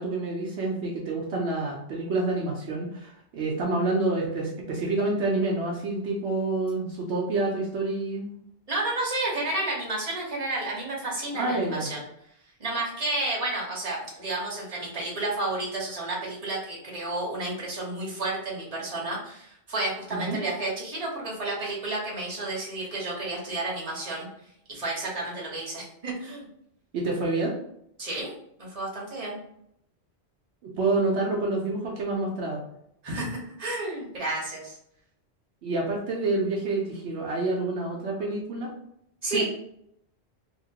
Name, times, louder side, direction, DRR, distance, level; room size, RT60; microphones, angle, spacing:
voice 1, 0.0-8.3 11.3-11.9 20.1-20.4 26.9-27.6 30.6-32.6 35.6-38.7 39.3-39.4, right 2 dB, 75° right, -2 dB, 0.9 m, -28 dB
voice 2, 8.7-12.0 12.6-24.3 24.7-26.5 28.0-28.3 28.6-29.4 33.0-34.8 39.2-39.4, right 2 dB, 35° right, -3 dB, 1.1 m, -31 dB
2.9 x 2.8 x 2.8 m, 0.73 s
omnidirectional pair, 1.2 m